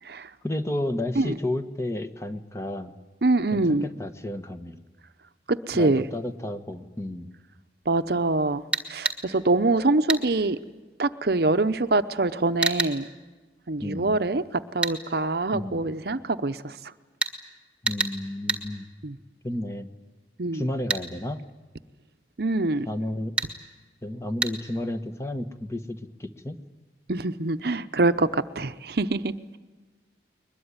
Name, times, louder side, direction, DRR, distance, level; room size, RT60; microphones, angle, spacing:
voice 1, 0.4-2.9 3.5-4.8 5.7-7.3 13.8-14.1 15.5-15.9 17.8-18.9 19.4-19.9 20.5-21.4 22.9-23.3 24.0-26.6, left 1 dB, 15° left, 8 dB, 1.2 m, -32 dB
voice 2, 3.2-3.9 5.5-6.0 7.9-8.6 8.9-10.6 11.0-13.1 13.7-14.4 14.7-16.7 19.0-19.2 20.4-20.7 22.4-22.9 27.1-29.6, right 2 dB, 55° right, 11 dB, 0.8 m, -24 dB
sound 1, 8.7-9.2 10.1-10.2 12.6-12.9 14.8-15.0 17.2-17.3 17.9-18.1 18.5-18.6 20.9-21.0 23.4-23.5 24.4-24.5, right 3 dB, 5° right, 1.8 m, -26 dB
22.0 x 21.5 x 9.7 m, 1.3 s
head